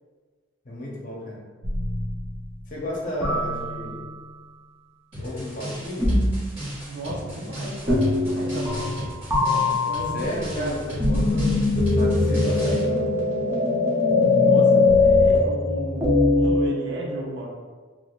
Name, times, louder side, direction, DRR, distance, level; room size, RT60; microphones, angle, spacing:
voice 1, 0.6-1.4 2.7-4.1 5.2-6.2 10.1-13.1, left 1 dB, 45° left, -4 dB, 0.7 m, -32 dB
sound 1, 1.6-2.4 3.2-4.3 6.0-6.6 7.9-9.0 9.3-16.7, left 3 dB, 15° right, 0.6 m, -21 dB
sound 2, 5.1-12.8, equal, 30° right, 1.5 m, -36 dB
voice 2, 6.9-10.8 14.4-17.5, right 1 dB, 60° right, -1 dB, 0.6 m, -34 dB
3.3 x 2.4 x 2.4 m, 1.5 s
head